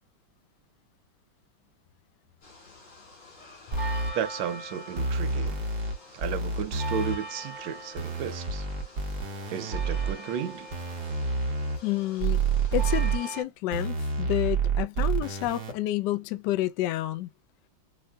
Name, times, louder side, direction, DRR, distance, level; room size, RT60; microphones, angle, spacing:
sound 1, 2.4-13.4, right 2 dB, 90° left, 3.3 m, -43 dB
sound 2, 3.7-4.1 5.0-5.9 6.2-7.2 8.0-10.1 10.7-11.8 12.2-13.2 13.7-15.7, right 4 dB, 55° right, 1.4 m, -28 dB
voice 1, 4.1-5.6 6.1-8.7 9.5-10.7, right 8 dB, 80° right, 1.6 m, -33 dB
voice 2, 11.8-12.4 12.7-17.3, left 14 dB, 75° left, 1.0 m, -29 dB
5.6 x 2.1 x 2.3 m
omnidirectional pair, 2.3 m